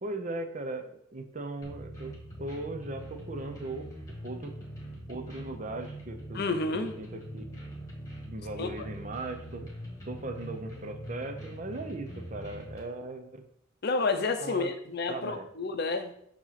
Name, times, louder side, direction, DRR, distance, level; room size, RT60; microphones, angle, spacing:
voice 1, 0.0-2.1 2.4-3.9 4.2-4.5 5.1-6.4 6.7-7.4 8.3-9.7 10.1-13.4 14.4-14.7 15.1-15.5, right 2 dB, 40° right, 6 dB, 0.6 m, -38 dB
sound 1, 1.6-12.8, equal, 15° left, 1.5 m, -43 dB
voice 2, 6.3-6.9 8.6-8.7 13.8-16.1, left 3 dB, 55° left, 8 dB, 0.6 m, -30 dB
7.1 x 3.0 x 5.8 m, 0.70 s
head